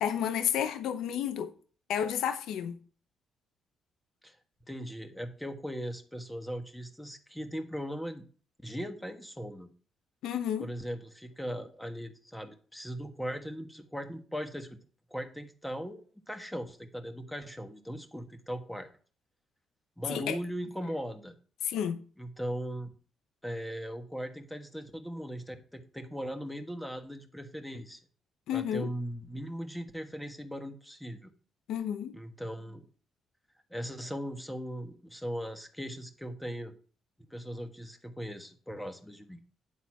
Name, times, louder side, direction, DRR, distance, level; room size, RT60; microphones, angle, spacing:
voice 1, 0.0-1.5 1.9-2.8 10.2-10.7 20.1-20.4 21.6-22.0 28.5-28.9 31.7-32.1, left 9 dB, 80° left, 0.7 m, -31 dB
voice 2, 4.7-8.2 8.6-9.7 10.6-14.8 15.1-18.9 20.0-21.3 22.2-22.9 23.4-28.0 28.5-31.3 32.1-32.9 33.7-36.7 37.3-39.4, equal, 5° left, 1.3 m, -39 dB
9.6 x 4.0 x 5.9 m
cardioid pair, 90°, 0 cm